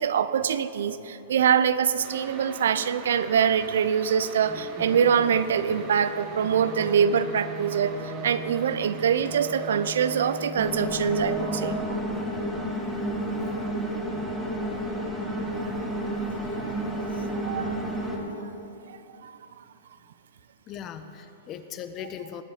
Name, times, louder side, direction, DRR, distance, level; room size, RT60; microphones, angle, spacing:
voice 1, 0.0-12.0 15.6-15.7 16.5-16.7 17.2-17.8 18.4-18.5 18.9-19.4, right 7 dB, 75° right, 14 dB, 0.5 m, -24 dB
sound 1, 2.0-10.5, right 4 dB, 40° right, 1.8 m, -43 dB
sound 2, 4.5-12.2, right 1 dB, 15° right, 1.2 m, -39 dB
sound 3, 10.6-18.2, right 1 dB, ahead, 2.4 m, -31 dB
voice 2, 20.7-22.4, left 9 dB, 35° left, 9 dB, 0.9 m, -39 dB
19.5 x 7.4 x 5.0 m, 3.0 s
hypercardioid pair, 120°, 0 cm